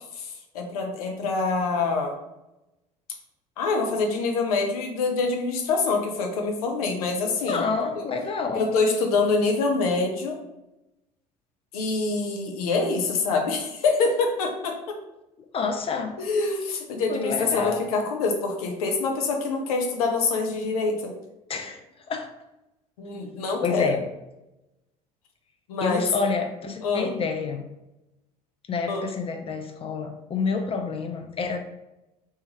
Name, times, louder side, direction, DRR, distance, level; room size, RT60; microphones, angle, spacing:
voice 1, 0.0-2.1 3.6-7.6 8.0-8.1 8.5-10.4 11.7-15.0 16.2-21.1 23.0-24.0 25.7-26.1 26.8-27.1 28.9-29.1, left 3 dB, 70° left, 3 dB, 0.7 m, -25 dB
voice 2, 7.5-8.7 15.5-16.2 17.1-17.9 21.5-21.8 22.1-22.3 23.6-24.1 25.8-27.6 28.7-31.6, left 4 dB, 30° left, 5 dB, 0.5 m, -28 dB
3.3 x 3.1 x 3.1 m, 0.93 s
figure-of-eight pair, 60°, 20 cm